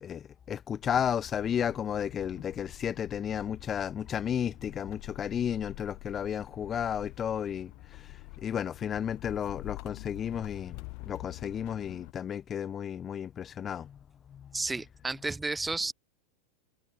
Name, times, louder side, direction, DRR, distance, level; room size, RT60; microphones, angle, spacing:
voice 1, 0.0-14.0 14.3-14.6, left 8 dB, 25° left, 1.0 m, -33 dB
sound 1, 0.8-12.1, left 39 dB, 45° left, 1.7 m, -46 dB
voice 2, 14.5-15.9, right 3 dB, 10° right, 1.3 m, -32 dB
figure-of-eight pair, 90°, 0 cm